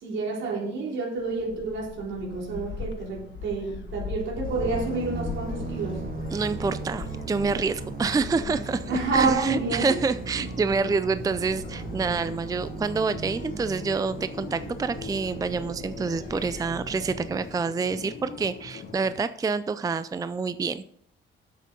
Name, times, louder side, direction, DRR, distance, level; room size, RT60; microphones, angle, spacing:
voice 1, 0.0-6.1 8.9-10.0, right 3 dB, 70° right, -1 dB, 3.6 m, -29 dB
Gull seagull, 1.2-16.6, left 5 dB, 65° left, 1.4 m, -41 dB
sound 1, 4.4-19.1, left 4 dB, 45° left, 1.8 m, -41 dB
sound 2, 4.6-17.5, right 5 dB, 45° right, 1.1 m, -38 dB
voice 2, 6.3-20.8, right 4 dB, 20° right, 13 dB, 0.4 m, -27 dB
8.3 x 7.7 x 5.2 m, 0.66 s
cardioid pair, 90°, 20 cm